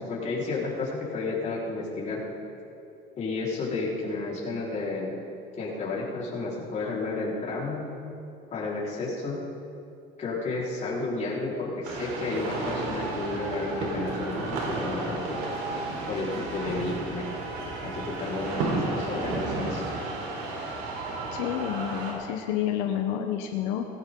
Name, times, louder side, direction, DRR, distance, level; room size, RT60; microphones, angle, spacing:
voice 1, 0.0-2.2 3.2-5.1 5.6-7.9 8.5-9.4 10.2-15.4 16.1-17.2 17.8-19.8, left 3 dB, 40° left, -6 dB, 4.5 m, -32 dB
sound 1, 11.8-22.1, right 2 dB, 85° right, 4.2 m, -32 dB
voice 2, 21.3-23.9, left 10 dB, 85° left, 4 dB, 1.0 m, -29 dB
18.5 x 15.5 x 3.9 m, 2.7 s
cardioid pair, 120°, 19 cm